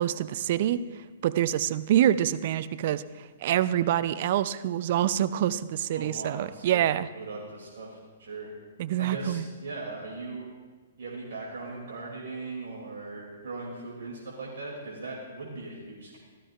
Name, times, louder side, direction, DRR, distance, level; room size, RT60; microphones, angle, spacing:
voice 1, 0.0-7.1 8.8-9.4, right 11 dB, 50° right, 14 dB, 0.5 m, -26 dB
voice 2, 5.9-6.8 7.1-8.5 9.0-10.5 11.0-16.2, right 3 dB, 65° right, -3 dB, 2.6 m, -39 dB
15.5 x 13.0 x 2.5 m, 1.4 s
figure-of-eight pair, 120°, 0 cm